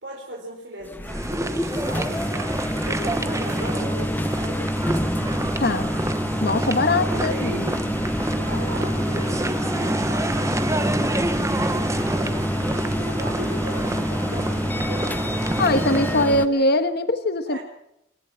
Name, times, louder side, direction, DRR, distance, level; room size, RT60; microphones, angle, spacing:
voice 1, 0.0-5.2 7.0-7.6 8.3-11.1 11.7-16.7 17.5-17.6, right 1 dB, 65° right, -2 dB, 4.7 m, -37 dB
sound 1, 0.8-16.5, equal, 10° left, 0.7 m, -27 dB
sound 2, 1.1-16.3, right 1 dB, 15° right, 1.0 m, -28 dB
voice 2, 5.6-5.9 6.4-7.7 15.6-17.6, left 2 dB, 55° left, 10 dB, 1.3 m, -22 dB
25.0 x 11.5 x 8.9 m, 0.80 s
head